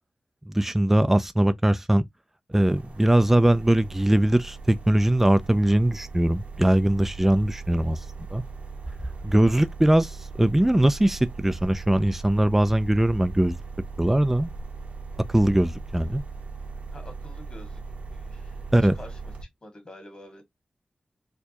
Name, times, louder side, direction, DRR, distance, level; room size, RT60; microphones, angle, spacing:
voice 1, 0.5-2.0 2.5-8.0 8.3-8.4 9.2-13.6 14.0-14.5 15.3-16.2 18.7-19.0, right 1 dB, 10° right, 0.4 m, -21 dB
sound 1, 2.5-19.4, right 4 dB, 70° right, 1.0 m, -39 dB
voice 2, 16.9-17.8 18.1-19.3 19.6-20.4, left 1 dB, 40° left, 1.9 m, -47 dB
4.4 x 2.2 x 2.8 m
wide cardioid pair, 75°, 2 cm